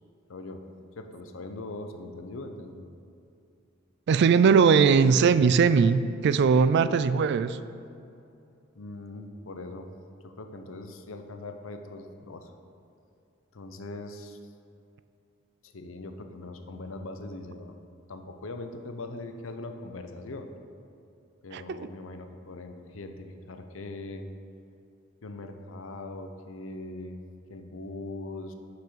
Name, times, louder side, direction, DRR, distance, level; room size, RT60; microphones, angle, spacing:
voice 1, 0.3-0.6 1.0-2.9 8.8-9.9 10.2-12.5 13.5-14.5 15.6-17.8 18.1-20.5 21.4-24.3 25.2-27.2 27.5-28.5, left 2 dB, 80° left, 6 dB, 0.7 m, -41 dB
voice 2, 4.1-7.6 21.5-21.8, right 5 dB, 55° right, 13 dB, 0.3 m, -20 dB
6.0 x 5.7 x 6.7 m, 2.6 s
head